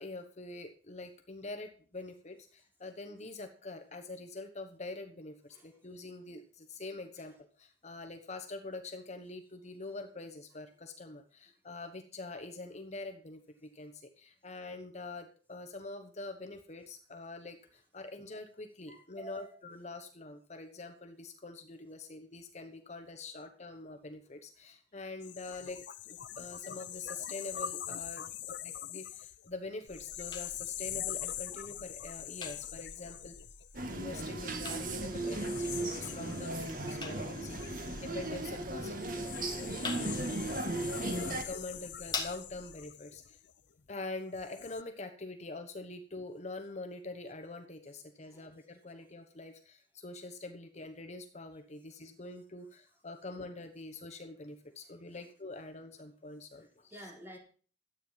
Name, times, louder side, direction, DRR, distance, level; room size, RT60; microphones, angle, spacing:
voice 1, 0.0-25.8 26.1-28.3 28.6-33.4 33.9-43.4 43.9-57.1, left 2 dB, 40° left, 6 dB, 1.1 m, -45 dB
voice 2, 18.9-19.5 37.6-37.8 48.3-48.5 56.9-57.4, right 2 dB, 15° right, -1 dB, 4.1 m, -49 dB
sound 1, 25.2-34.4 35.0-43.8 44.3-44.8, left 11 dB, 90° left, 0.7 m, -43 dB
sound 2, 29.9-42.9, left 4 dB, 25° left, 2.0 m, -47 dB
sound 3, 33.7-41.4, right 2 dB, 50° right, 1.8 m, -36 dB
12.5 x 9.1 x 5.7 m, 0.41 s
head